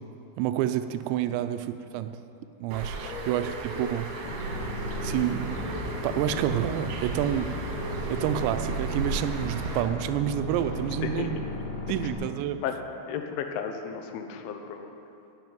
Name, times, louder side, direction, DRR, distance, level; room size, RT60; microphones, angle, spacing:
voice 1, 0.4-2.2 2.6-4.1 5.0-5.5 5.7-7.5 7.8-11.4 11.9-12.6, right 11 dB, 85° right, 10 dB, 2.6 m, -29 dB
Bird, 2.7-9.8, right 3 dB, 65° right, 2.5 m, -35 dB
sound 1, 4.2-12.1, left 1 dB, 65° left, 4.5 m, -35 dB
voice 2, 13.1-14.9, left 7 dB, 80° left, 5 dB, 2.3 m, -34 dB
12.0 x 5.9 x 9.2 m, 2.7 s
omnidirectional pair, 5.5 m